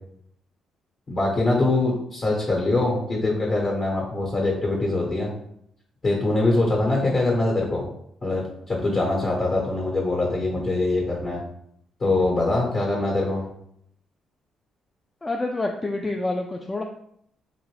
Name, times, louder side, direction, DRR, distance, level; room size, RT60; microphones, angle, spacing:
voice 1, 1.1-5.3 6.0-7.9 8.2-11.4 12.0-13.4, left 2 dB, 45° left, -2 dB, 1.1 m, -23 dB
voice 2, 15.2-16.8, left 2 dB, 20° left, 2 dB, 0.3 m, -27 dB
3.4 x 2.5 x 3.2 m, 0.69 s
cardioid pair, 90°, 0 cm